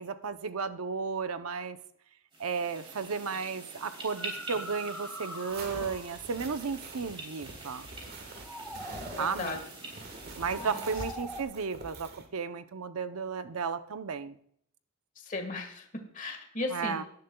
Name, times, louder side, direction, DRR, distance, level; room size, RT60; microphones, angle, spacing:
voice 1, 0.0-1.8 2.4-7.9 9.2-9.6 10.4-14.4 16.7-17.0, right 5 dB, 85° right, 11 dB, 0.7 m, -34 dB
sound 1, 2.3-11.2, right 2 dB, 25° right, 3.3 m, -46 dB
sound 2, 3.0-3.1 3.9-6.3 8.2-9.3 10.3-11.4, equal, ahead, 1.9 m, -43 dB
sound 3, 5.5-12.3, right 2 dB, 45° right, 1.5 m, -45 dB
voice 2, 9.2-9.6 10.6-10.9 15.2-15.9 16.1-17.0, left 2 dB, 35° left, 4 dB, 1.6 m, -36 dB
17.5 x 10.5 x 2.3 m, 0.67 s
head